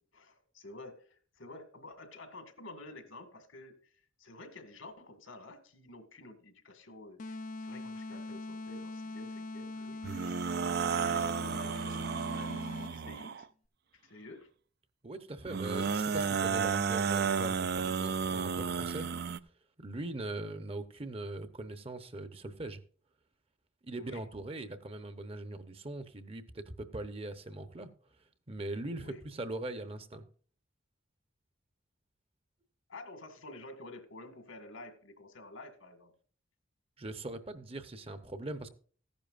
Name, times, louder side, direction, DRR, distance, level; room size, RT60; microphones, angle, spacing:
voice 1, 0.1-10.5 10.9-13.5 13.9-14.5 24.0-24.2 29.0-29.2 32.9-36.1, left 2 dB, 80° left, 1.9 m, -50 dB
sound 1, 7.2-13.2, left 2 dB, 40° left, 0.5 m, -42 dB
sound 2, 10.0-13.4 15.5-19.4, right 6 dB, 50° right, 0.4 m, -32 dB
voice 2, 15.0-19.1 19.8-22.8 23.9-27.9 28.5-30.3 37.0-38.7, right 2 dB, 30° right, 0.8 m, -41 dB
14.5 x 10.5 x 2.5 m
head